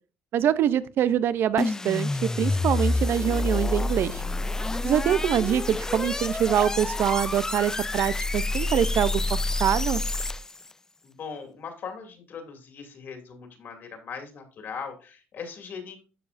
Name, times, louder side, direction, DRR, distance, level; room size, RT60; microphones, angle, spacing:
voice 1, 0.3-4.2 4.8-10.0, right 10 dB, 60° right, 16 dB, 0.6 m, -24 dB
sound 1, 1.6-10.7, left 2 dB, 15° left, 0.4 m, -28 dB
voice 2, 11.0-16.0, left 6 dB, 50° left, 4 dB, 2.5 m, -39 dB
13.0 x 4.8 x 2.6 m, 0.33 s
cardioid pair, 135°, 4 cm